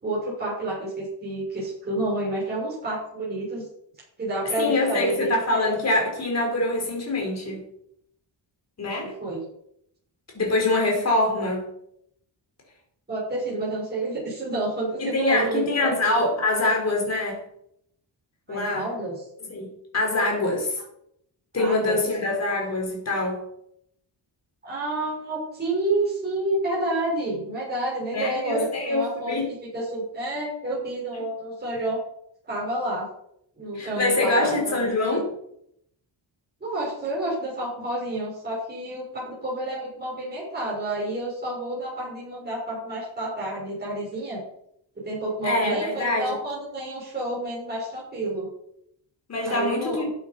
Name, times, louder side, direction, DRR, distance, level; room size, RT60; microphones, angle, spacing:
voice 1, 0.0-3.7 4.2-5.7 8.8-9.4 13.1-15.9 18.5-19.1 21.5-22.0 24.6-29.3 29.7-32.0 32.5-33.1 33.6-35.2 36.6-44.4 44.9-48.5 49.4-50.0, right 1 dB, 20° right, -6 dB, 6.5 m, -29 dB
voice 2, 4.6-7.7 8.8-9.1 10.3-11.7 15.0-17.4 18.5-18.9 19.5-20.8 21.5-23.4 28.1-29.5 31.1-31.2 33.7-35.3 45.4-46.4 49.3-50.1, left 2 dB, 35° left, 0 dB, 4.8 m, -24 dB
13.0 x 8.7 x 5.6 m, 0.73 s
wide cardioid pair, 180°, 44 cm